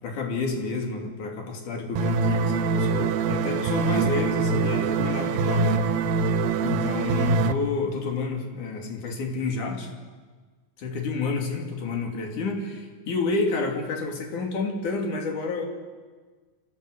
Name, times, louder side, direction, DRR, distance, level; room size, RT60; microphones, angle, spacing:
voice 1, 0.0-5.9 6.6-10.0 10.8-15.7, left 3 dB, 60° left, 2 dB, 4.1 m, -29 dB
sound 1, 2.0-7.5, right 4 dB, 85° right, 2.7 m, -24 dB
27.0 x 15.5 x 8.0 m, 1.4 s
omnidirectional pair, 4.1 m